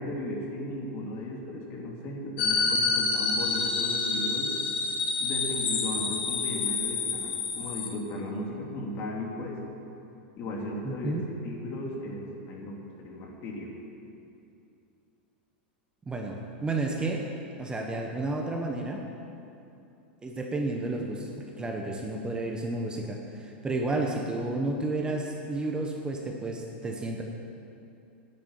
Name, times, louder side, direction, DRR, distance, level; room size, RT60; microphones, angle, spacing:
voice 1, 0.0-4.5 5.2-9.6 10.4-11.1 11.4-13.7, left 1 dB, 45° left, -1 dB, 2.9 m, -36 dB
sound 1, 2.4-7.9, left 4 dB, 75° left, 2.2 m, -28 dB
voice 2, 10.8-11.3 16.1-17.2 17.6-19.0 20.2-21.3 21.6-27.2, right 2 dB, 15° right, 1 dB, 1.3 m, -31 dB
10.0 x 8.8 x 9.0 m, 2.7 s
hypercardioid pair, 115°, 6 cm